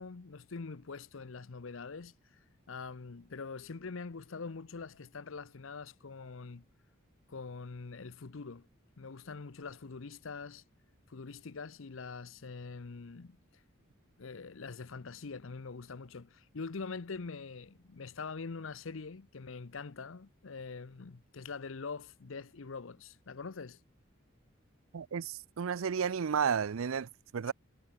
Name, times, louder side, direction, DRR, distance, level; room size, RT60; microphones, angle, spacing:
voice 1, 0.0-2.1 2.7-6.7 7.3-8.7 9.0-10.6 11.1-13.4 14.2-23.8 27.4-27.5, left 4 dB, 70° left, 0.7 m, -44 dB
voice 2, 24.9-27.5, right 7 dB, 80° right, 0.5 m, -32 dB
head